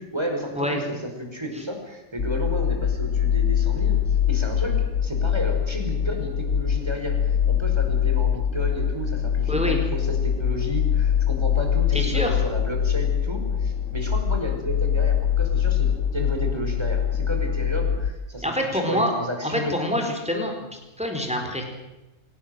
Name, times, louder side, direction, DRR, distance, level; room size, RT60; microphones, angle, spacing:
voice 1, 0.0-4.0 4.3-20.0, equal, 20° right, 3 dB, 5.3 m, -32 dB
sound 1, 2.2-18.1, left 8 dB, 75° left, 1.8 m, -23 dB
voice 2, 9.5-9.8 11.9-12.4 18.4-19.1 19.4-20.7 21.0-21.6, left 1 dB, 5° right, 2 dB, 4.6 m, -26 dB
25.0 x 18.0 x 7.9 m, 1.0 s
omnidirectional pair, 1.3 m